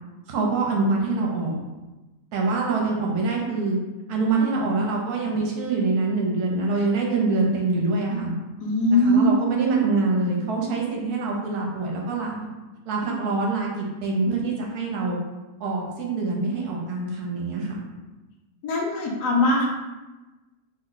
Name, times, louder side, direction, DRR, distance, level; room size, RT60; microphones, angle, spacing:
voice 1, 0.3-1.6 2.3-3.8 4.1-8.3 8.9-12.4 12.9-15.2 15.6-17.8, right 3 dB, 75° right, -1 dB, 1.1 m, -25 dB
voice 2, 8.6-9.3 18.6-19.7, left 1 dB, 80° left, -1 dB, 1.2 m, -20 dB
3.1 x 2.1 x 3.7 m, 1.1 s
omnidirectional pair, 1.8 m